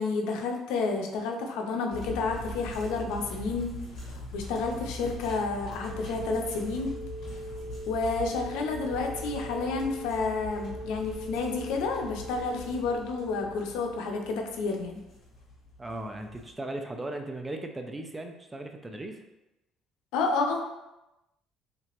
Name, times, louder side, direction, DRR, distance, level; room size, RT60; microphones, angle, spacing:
voice 1, 0.0-3.7 4.0-6.9 7.9-15.0 20.1-20.7, left 4 dB, 90° left, 3 dB, 0.5 m, -30 dB
sound 1, 1.9-16.5, left 1 dB, 55° left, 1.4 m, -42 dB
sound 2, 5.8-14.2, right 1 dB, 75° right, 1.1 m, -42 dB
voice 2, 15.8-19.2, right 1 dB, 15° right, 4 dB, 0.4 m, -37 dB
3.2 x 2.9 x 2.9 m, 0.95 s
cardioid pair, 125°, 0 cm